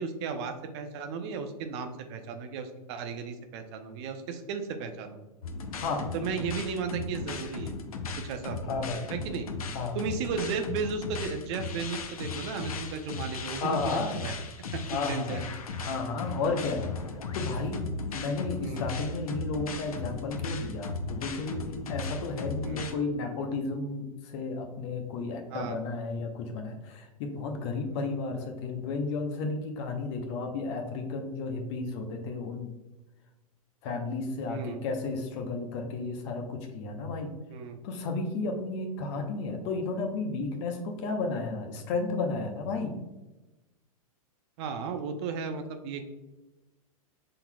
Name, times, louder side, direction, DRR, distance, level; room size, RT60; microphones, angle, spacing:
voice 1, 0.0-5.2 6.1-7.7 8.2-8.7 9.1-9.5 9.9-14.3 14.7-15.4 18.6-18.8 22.6-22.9 25.5-25.8 34.5-34.8 37.5-37.8 44.6-46.1, right 5 dB, 50° right, 7 dB, 0.6 m, -34 dB
sound 1, 5.4-22.9, left 4 dB, 80° left, 0.6 m, -37 dB
voice 2, 5.8-6.1 8.6-9.1 9.7-10.0 13.6-14.1 14.9-15.5 15.9-16.9 17.3-32.7 33.8-37.3 37.8-42.9, left 3 dB, 50° left, 4 dB, 0.9 m, -33 dB
5.7 x 3.8 x 2.3 m, 1.1 s
hypercardioid pair, 115°, 18 cm